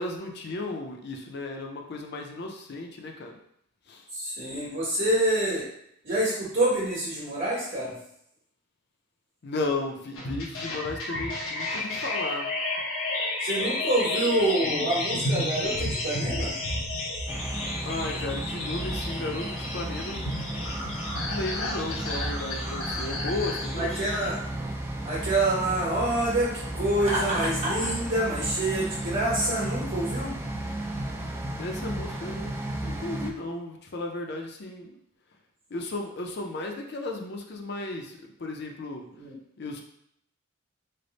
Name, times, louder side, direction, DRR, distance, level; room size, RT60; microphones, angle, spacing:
voice 1, 0.0-3.4 3.9-4.0 9.4-12.5 17.8-20.5 21.1-23.9 31.6-32.5 32.8-35.0 35.7-39.1 39.6-39.8, left 2 dB, 55° left, 2 dB, 0.5 m, -34 dB
voice 2, 4.1-5.6 6.0-7.9 13.4-16.6 23.8-24.4 25.0-30.3 39.2-39.4, right 1 dB, 55° right, -8 dB, 1.2 m, -27 dB
sound 1, 10.1-24.3, left 2 dB, 90° left, 0.9 m, -32 dB
sound 2, 17.3-33.3, right 1 dB, 10° right, 0.3 m, -34 dB
Laughter, 27.0-27.9, right 1 dB, 30° right, 1.1 m, -29 dB
3.3 x 2.1 x 3.9 m, 0.72 s
head